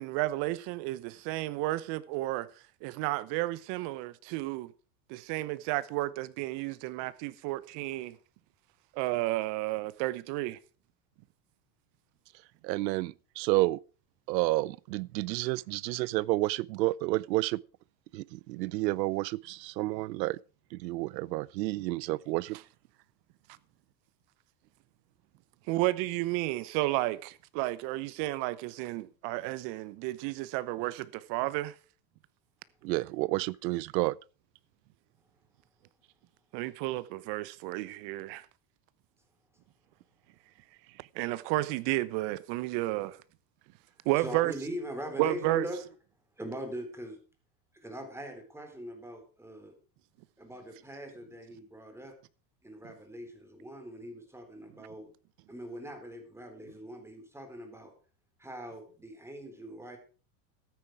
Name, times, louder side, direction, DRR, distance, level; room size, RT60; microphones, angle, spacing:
voice 1, 0.0-2.5 2.8-4.7 5.1-8.2 8.9-10.6 25.7-31.7 36.5-38.4 41.1-43.2 44.0-44.5 45.2-45.7, right 18 dB, 55° right, 1.1 m, -32 dB
voice 2, 12.6-13.8 14.3-17.6 18.1-20.4 20.7-22.6 32.8-34.1, right 19 dB, 85° right, 0.6 m, -30 dB
voice 3, 44.1-45.8 46.4-47.2 47.8-49.7 50.4-52.1 52.6-55.1 55.5-57.9 58.4-60.0, right 1 dB, 5° right, 3.8 m, -41 dB
13.5 x 9.4 x 4.8 m
supercardioid pair, 110°, 50 cm